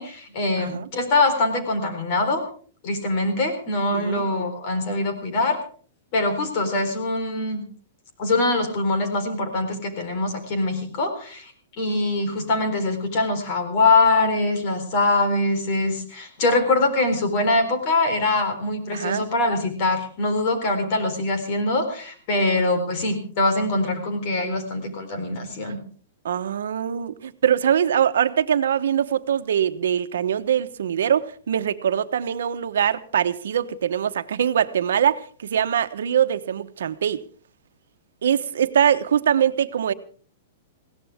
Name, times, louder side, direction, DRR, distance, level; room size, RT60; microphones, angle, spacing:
voice 1, 0.0-2.4 2.8-5.6 6.1-7.6 8.2-11.5 11.8-25.8, left 2 dB, 40° left, 4.1 m, -23 dB
voice 2, 0.6-0.9 3.9-4.2 18.9-19.2 25.6-25.8 26.2-37.2 38.2-39.9, right 9 dB, 85° right, 1.1 m, -23 dB
21.0 x 17.0 x 3.6 m
hypercardioid pair, 165°, 0 cm